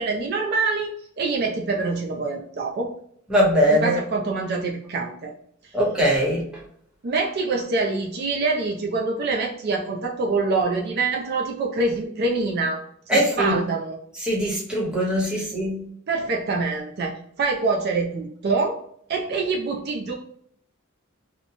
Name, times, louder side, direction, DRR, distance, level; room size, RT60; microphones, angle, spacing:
voice 1, 0.0-2.9 3.7-5.3 7.0-12.8 13.1-14.0 15.4-15.5 16.1-18.8 19.1-20.2, right 3 dB, 50° right, 1 dB, 0.4 m, -25 dB
voice 2, 3.3-4.0 5.7-6.4 13.1-13.6 14.2-15.8, equal, 5° right, -4 dB, 1.0 m, -21 dB
2.9 x 2.1 x 2.6 m, 0.65 s
head